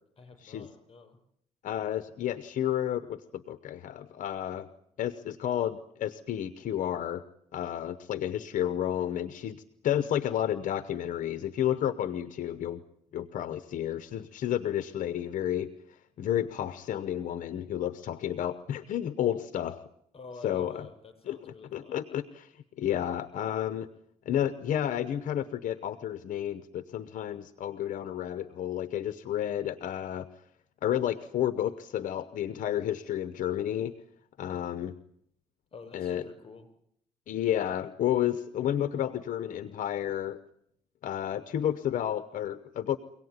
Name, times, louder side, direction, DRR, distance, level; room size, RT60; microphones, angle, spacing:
voice 1, 0.2-1.2 20.1-22.0 35.7-36.7, left 4 dB, 45° left, 8 dB, 6.4 m, -48 dB
voice 2, 1.6-4.7 5.0-7.2 7.5-12.8 13.1-19.8 20.4-20.9 21.3-21.4 21.7-23.9 24.2-30.3 30.8-33.9 34.4-34.9 35.9-36.2 37.3-40.4 41.0-43.0, left 11 dB, 70° left, 13 dB, 0.9 m, -31 dB
24.0 x 18.0 x 9.6 m, 0.75 s
cardioid pair, 90°, 14 cm